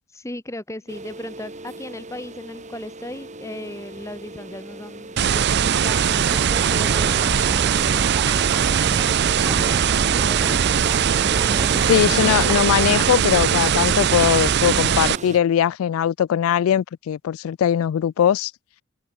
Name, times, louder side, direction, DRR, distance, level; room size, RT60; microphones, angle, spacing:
voice 1, 0.1-7.7 9.3-10.3, left 1 dB, 15° left, 1.3 m, -37 dB
sound 1, 0.9-15.4, right 2 dB, 35° right, 3.9 m, -38 dB
sound 2, 5.2-15.2, right 8 dB, 55° right, 0.5 m, -20 dB
sound 3, 6.2-12.6, right 1 dB, 20° right, 1.5 m, -31 dB
voice 2, 11.9-18.5, left 9 dB, 80° left, 0.3 m, -20 dB
head